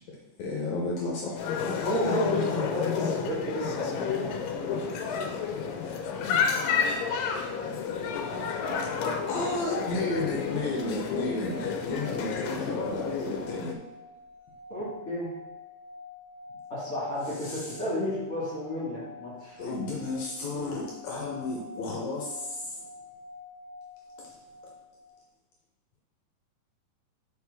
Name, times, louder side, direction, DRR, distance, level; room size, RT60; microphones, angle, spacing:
voice 1, 0.1-1.4 8.8-8.9 9.3-13.8 17.4-17.8 19.6-22.8 24.2-24.3, left 2 dB, 70° left, -2 dB, 1.9 m, -32 dB
sound 1, 1.4-13.7, left 6 dB, 85° left, 2.3 m, -31 dB
voice 2, 1.8-4.8 14.7-15.3 16.7-19.6, equal, 30° left, -8 dB, 2.2 m, -32 dB
sound 2, 8.0-25.1, left 2 dB, 60° right, 1.6 m, -47 dB
6.4 x 4.8 x 3.5 m, 1.1 s
omnidirectional pair, 3.9 m